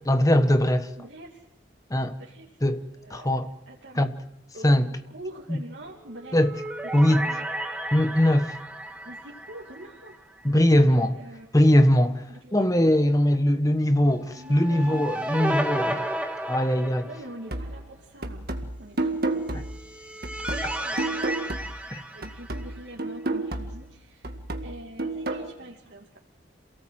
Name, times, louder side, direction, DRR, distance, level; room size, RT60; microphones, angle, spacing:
voice 1, 0.1-0.9 1.9-2.2 2.6-2.8 3.1-3.5 4.0-4.1 4.6-4.9 5.5-5.6 6.3-6.5 6.9-7.2 7.9-8.5 10.4-11.1 11.5-12.2 12.5-16.1 16.5-17.1 19.5-19.6 21.9-22.0, left 1 dB, 20° left, 1.3 m, -21 dB
voice 2, 1.0-1.4 2.2-2.5 3.0-3.3 3.7-4.1 4.5-4.7 5.1-6.4 7.1-7.4 9.0-10.1 10.7-11.5 12.3-12.9 14.3-15.1 17.0-18.5 18.8-19.4 20.4-21.3 22.1-24.3 24.6-26.2, right 1 dB, 75° right, 2.8 m, -44 dB
sound 1, 6.2-10.5 10.7-10.8 14.4-17.5 19.5-22.9, right 1 dB, 5° right, 1.9 m, -33 dB
sound 2, 17.5-21.9 22.2-25.5, right 2 dB, 55° right, 2.0 m, -32 dB
28.0 x 18.0 x 7.7 m
head